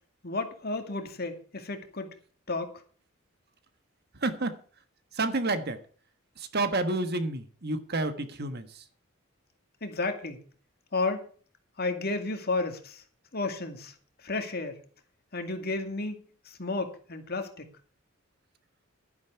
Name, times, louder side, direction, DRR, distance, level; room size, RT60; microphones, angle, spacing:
voice 1, 0.2-2.1 2.5-2.7 9.8-10.4 10.9-11.3 11.8-13.0 13.3-13.9 14.2-14.8 15.3-17.7, left 3 dB, 50° left, 6 dB, 2.3 m, -32 dB
voice 2, 4.2-4.6 5.1-5.8 6.4-8.8, right 2 dB, 50° right, 10 dB, 1.5 m, -30 dB
12.0 x 10.5 x 4.8 m, 0.42 s
head